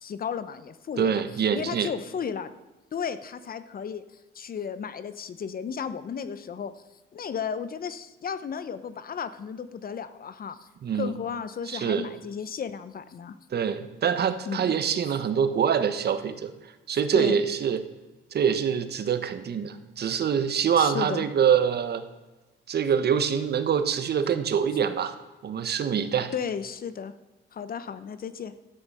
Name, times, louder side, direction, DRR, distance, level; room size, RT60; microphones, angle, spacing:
voice 1, 0.0-1.2 1.5-2.5 2.9-4.0 4.3-6.7 7.1-10.6 10.9-13.4 14.5-14.7 17.1-17.4 20.8-21.2 26.3-27.1 27.5-28.5, left 7 dB, 45° left, 13 dB, 0.9 m, -34 dB
voice 2, 1.0-1.9 10.8-11.1 11.7-12.1 13.5-16.5 16.9-17.8 18.3-22.0 22.7-25.1 25.4-26.3, right 7 dB, 55° right, 10 dB, 1.2 m, -25 dB
13.0 x 8.7 x 5.6 m, 1.1 s
cardioid pair, 90°, 20 cm